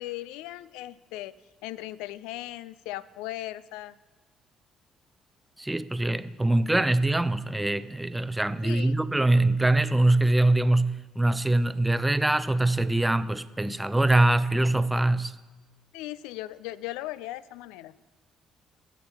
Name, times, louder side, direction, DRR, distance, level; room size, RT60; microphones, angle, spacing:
voice 1, 0.0-1.3 1.6-4.0 8.6-9.0 15.9-17.9, left 15 dB, 75° left, 0.3 m, -38 dB
voice 2, 5.6-15.3, right 2 dB, 10° right, 0.5 m, -23 dB
8.4 x 7.2 x 5.6 m
hypercardioid pair, 55°, 0 cm